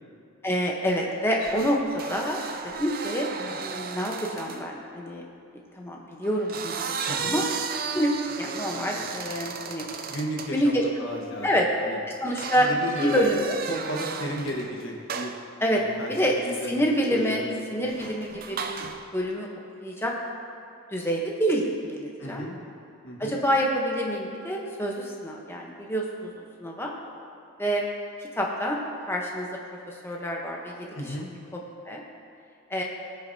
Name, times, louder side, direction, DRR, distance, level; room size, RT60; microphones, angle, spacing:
voice 1, 0.4-3.3 3.6-5.2 5.8-7.5 7.9-9.9 10.5-10.8 11.4-11.7 12.2-12.7 13.0-13.5 15.6-15.8 16.1-16.3 16.7-17.4 17.7-18.8 19.1-19.5 19.8-20.1 20.9-22.5 23.2-26.9 27.6-27.8 28.4-28.8 29.1-29.5 29.9-31.2 31.5-31.6 31.9-32.0 32.7-32.8, equal, 10° left, -1 dB, 0.9 m, -27 dB
sound 1, 1.4-4.7 6.2-10.6 12.4-14.7 15.1-15.5 17.9-19.1, right 5 dB, 40° right, 0.5 m, -35 dB
voice 2, 10.1-11.6 11.9-12.0 12.5-13.2 13.7-15.4 15.6-16.1 16.4-16.8 17.1-17.8 22.2-22.6 23.0-23.4 30.9-31.3, equal, 60° left, 0 dB, 1.4 m, -34 dB
19.0 x 6.6 x 2.8 m, 2.5 s
head